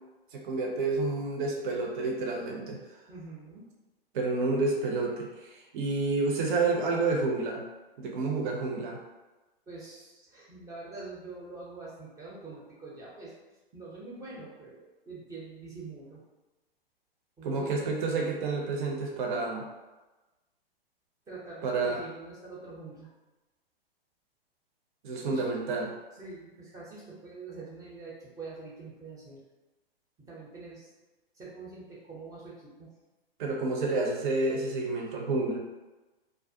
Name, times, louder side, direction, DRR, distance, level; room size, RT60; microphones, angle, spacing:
voice 1, 0.3-2.8 4.1-7.6 8.0-9.0 17.4-19.6 21.6-22.0 25.0-25.9 33.4-35.6, right 3 dB, 55° right, 0 dB, 0.6 m, -29 dB
voice 2, 3.1-3.6 9.7-13.3 13.7-16.2 17.4-17.7 21.3-23.1 25.2-25.4 26.1-29.4 30.2-30.9 31.3-32.9, right 3 dB, 10° right, -6 dB, 0.5 m, -45 dB
2.4 x 2.1 x 2.6 m, 1.1 s
hypercardioid pair, 120°, 30 cm